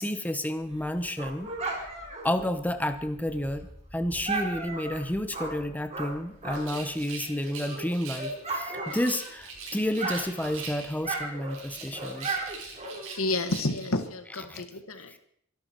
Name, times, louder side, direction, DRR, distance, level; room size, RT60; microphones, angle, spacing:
voice 1, 0.0-1.5 2.2-3.7 3.9-12.4 14.3-14.6, left 1 dB, 5° left, 8 dB, 1.0 m, -30 dB
Dog, 0.6-6.9 7.3-9.6 9.8-13.3, right 3 dB, 30° right, 4.3 m, -36 dB
Rattle, 6.5-8.4 8.9-11.1 11.5-13.9, right 4 dB, 65° right, 6.0 m, -42 dB
voice 2, 13.2-15.2, left 2 dB, 70° left, 8 dB, 1.8 m, -30 dB
23.5 x 12.0 x 4.6 m, 0.70 s
head